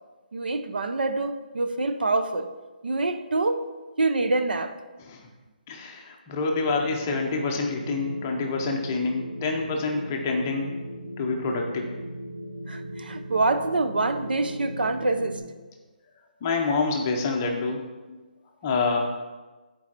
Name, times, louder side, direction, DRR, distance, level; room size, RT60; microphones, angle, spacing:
voice 1, 0.3-2.5 2.8-3.6 4.0-4.8 12.7-15.5, right 2 dB, 90° right, 8 dB, 0.8 m, -26 dB
voice 2, 5.7-10.7 11.2-11.9 16.4-17.8 18.1-18.2 18.6-19.1, left 4 dB, 15° left, 1 dB, 0.6 m, -27 dB
sound 1, 6.5-15.4, equal, 70° right, 2.4 m, -38 dB
8.7 x 4.7 x 5.9 m, 1.2 s
hypercardioid pair, 180°, 5 cm